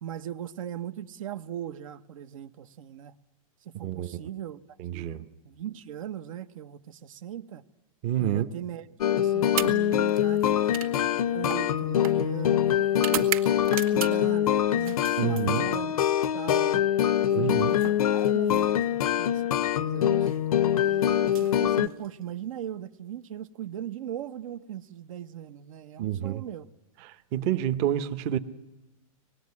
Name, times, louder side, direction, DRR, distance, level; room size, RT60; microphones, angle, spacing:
voice 1, 0.0-3.1 3.6-4.6 4.9-5.1 5.4-7.6 8.2-8.9 9.2-13.3 13.9-15.9 16.3-16.8 17.3-20.3 20.8-26.7, right 10 dB, 65° right, 1.0 m, -39 dB
voice 2, 4.8-5.3 8.0-8.5 15.2-15.6 17.4-17.7 26.0-26.4 27.3-28.4, right 11 dB, 35° right, 0.9 m, -28 dB
sound 1, 9.0-21.9, left 10 dB, 90° left, 0.8 m, -24 dB
sound 2, 9.4-14.4 14.8-16.0 17.2-19.0 20.1-20.4 21.2-22.3, right 10 dB, 85° right, 2.1 m, -38 dB
25.0 x 20.0 x 9.6 m
supercardioid pair, 155°, 18 cm